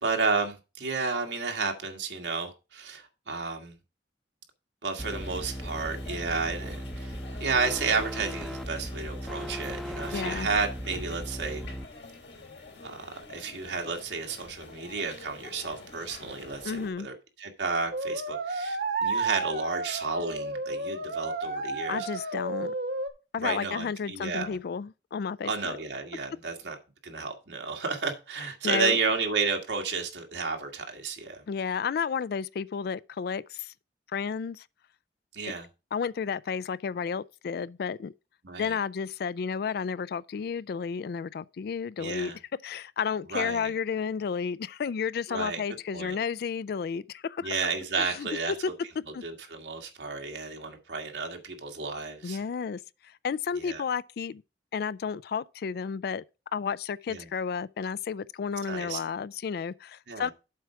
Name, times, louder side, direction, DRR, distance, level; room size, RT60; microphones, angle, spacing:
voice 1, 0.0-3.7 4.8-11.6 12.8-22.1 22.6-22.7 23.4-24.6 25.4-26.8 27.0-31.4 35.3-35.7 38.4-38.7 42.0-42.4 43.3-43.7 45.3-45.6 45.9-46.2 47.4-48.7 49.2-52.4 53.6-53.8 57.1-57.3 58.7-59.0 60.1-60.3, right 4 dB, 85° right, 1.7 m, -32 dB
sound 1, 5.0-16.9, left 3 dB, 85° left, 3.3 m, -47 dB
sound 2, 5.0-11.8, equal, ahead, 0.6 m, -37 dB
voice 2, 10.1-10.5 16.6-17.1 21.9-22.7 23.3-25.8 28.6-29.0 31.5-33.7 34.1-34.6 35.9-38.1 38.6-42.3 42.6-47.6 48.0-48.7 49.1-49.2 52.2-54.4 54.7-56.2 56.5-60.3, left 6 dB, 60° left, 0.3 m, -32 dB
sound 3, 17.9-23.1, right 3 dB, 60° right, 1.2 m, -32 dB
7.7 x 4.7 x 5.7 m
head